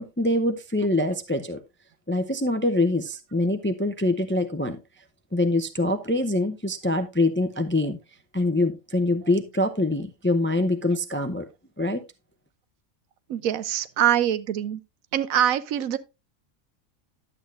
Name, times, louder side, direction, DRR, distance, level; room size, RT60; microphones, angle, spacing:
voice 1, 0.0-1.6 2.1-4.8 5.3-8.0 8.3-11.5 11.8-12.0, left 2 dB, 15° left, 0.4 m, -24 dB
voice 2, 13.3-14.8 15.1-16.0, right 11 dB, 90° right, 1.1 m, -24 dB
11.0 x 8.0 x 2.5 m
omnidirectional pair, 1.4 m